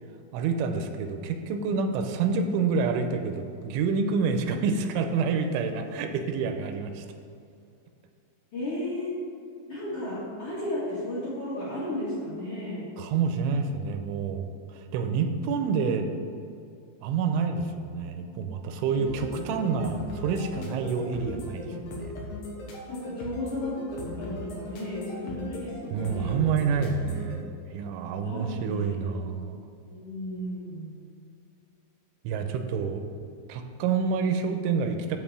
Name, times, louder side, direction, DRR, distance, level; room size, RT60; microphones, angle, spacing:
voice 1, 0.3-7.0 13.0-14.5 14.9-16.2 17.0-22.1 25.9-29.6 32.2-33.0 33.5-35.2, right 5 dB, 90° right, 6 dB, 3.1 m, -28 dB
voice 2, 8.5-9.1 9.7-12.9 18.8-19.3 22.9-26.4 28.2-29.1 29.9-31.0, left 1 dB, 45° left, -9 dB, 2.0 m, -34 dB
sound 1, 19.1-27.3, left 1 dB, 70° left, 2.0 m, -38 dB
10.0 x 3.9 x 7.3 m, 2.4 s
omnidirectional pair, 5.5 m